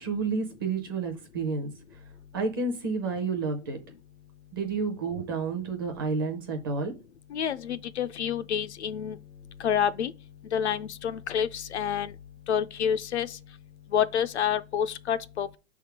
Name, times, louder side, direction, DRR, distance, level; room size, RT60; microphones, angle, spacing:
voice 1, 0.0-1.7 2.3-3.8 4.5-6.9, right 4 dB, 20° right, 0.6 m, -30 dB
voice 2, 7.3-9.2 9.6-10.1 10.5-12.1 12.5-13.4 13.9-15.6, left 8 dB, 55° left, 0.5 m, -28 dB
5.4 x 3.6 x 5.8 m
hypercardioid pair, 170°, 40 cm